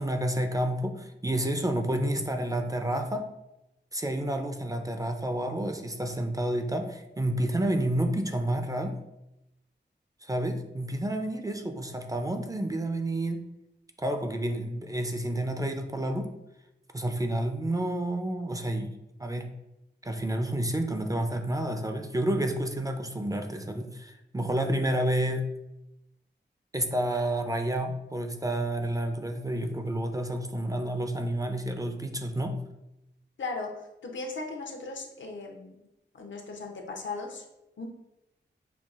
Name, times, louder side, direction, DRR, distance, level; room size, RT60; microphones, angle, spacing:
voice 1, 0.0-3.3 3.9-9.0 10.2-13.5 14.0-16.3 16.9-18.9 19.2-19.5 20.0-25.5 26.7-32.6, right 1 dB, 20° right, 5 dB, 0.4 m, -30 dB
voice 2, 33.4-33.7 34.0-35.8 36.1-37.4 37.8-37.9, left 3 dB, 75° left, 2 dB, 0.7 m, -37 dB
5.5 x 2.3 x 2.4 m, 0.90 s
wide cardioid pair, 60°, 20 cm